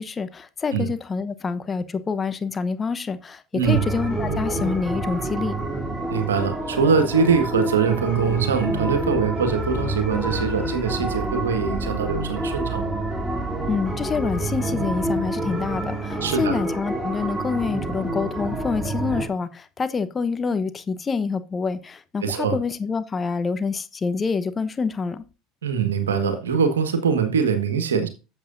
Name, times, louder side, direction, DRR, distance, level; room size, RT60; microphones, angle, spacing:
voice 1, 0.0-5.5 13.7-25.2, left 5 dB, 25° left, 0.9 m, -27 dB
voice 2, 3.5-3.8 6.1-12.9 16.2-16.6 22.2-22.6 25.6-28.1, right 6 dB, 85° right, 1.6 m, -22 dB
sound 1, 3.6-19.3, right 1 dB, ahead, 3.0 m, -28 dB
12.0 x 7.8 x 2.6 m
hypercardioid pair, 75°, 0 cm